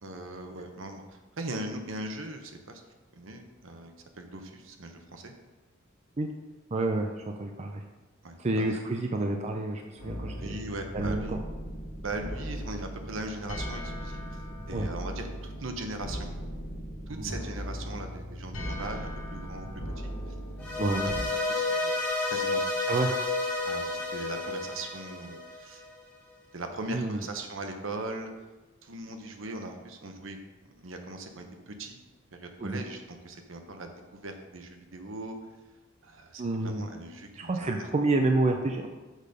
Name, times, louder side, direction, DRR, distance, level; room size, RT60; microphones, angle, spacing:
voice 1, 0.0-1.0 1.4-2.8 3.1-5.3 8.2-8.7 10.4-11.4 12.0-14.4 14.7-16.3 17.1-19.7 20.0-20.1 21.0-21.1 21.4-21.9 22.3-22.9 23.6-25.8 26.5-28.3 28.8-30.4 30.8-32.0 32.3-35.4 36.0-37.9, right 2 dB, 70° right, 5 dB, 0.9 m, -39 dB
voice 2, 6.7-7.1 7.4-7.8 8.4-10.6 10.9-11.4 14.7-14.9 17.2-17.3 20.8-21.1 22.9-23.1 26.9-27.2 32.6-32.8 36.4-36.9 37.4-38.9, right 2 dB, 30° right, 3 dB, 0.5 m, -28 dB
sound 1, 10.0-21.2, equal, 70° left, 1.2 m, -38 dB
sound 2, 20.6-25.9, left 3 dB, 5° left, 1.4 m, -31 dB
6.6 x 5.1 x 5.2 m, 1.2 s
head